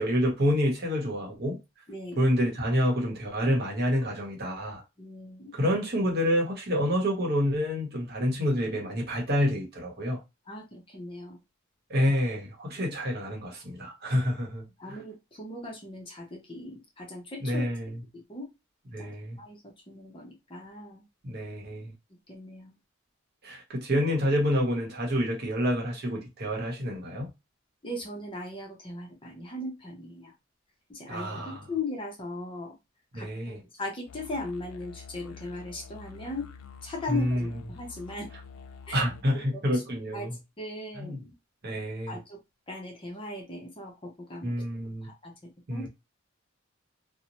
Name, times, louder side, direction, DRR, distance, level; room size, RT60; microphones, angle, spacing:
voice 1, 0.0-1.6 2.2-4.8 5.5-10.2 11.9-15.0 17.4-18.0 18.9-19.4 21.2-21.9 23.4-27.3 31.1-31.6 33.1-33.6 37.1-37.5 38.9-40.4 41.0-41.2 41.6-42.2 44.4-45.1 45.7-45.9, equal, 50° right, 0.9 m, -28 dB
voice 2, 1.9-2.2 5.0-5.5 10.5-11.4 14.8-17.6 18.3-18.5 19.0-19.1 19.4-21.0 22.3-22.7 27.8-30.3 30.9-32.8 33.1-36.5 36.8-38.3 38.9-39.0 39.7-39.8 40.1-41.3 42.1-42.4 42.7-44.5 45.0-45.3 45.7-45.9, left 2 dB, 25° left, 0.7 m, -38 dB
sound 1, 34.1-39.2, left 6 dB, 90° left, 0.4 m, -47 dB
2.6 x 2.1 x 2.9 m
head